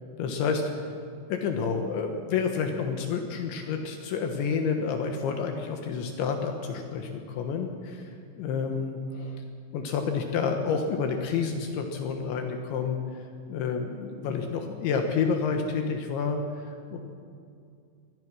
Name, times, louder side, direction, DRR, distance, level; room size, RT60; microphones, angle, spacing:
voice 1, 0.2-0.6 1.3-8.1 8.4-9.4 9.7-17.0, left 5 dB, 70° left, 4 dB, 3.4 m, -29 dB
24.5 x 20.0 x 6.2 m, 2.4 s
omnidirectional pair, 5.7 m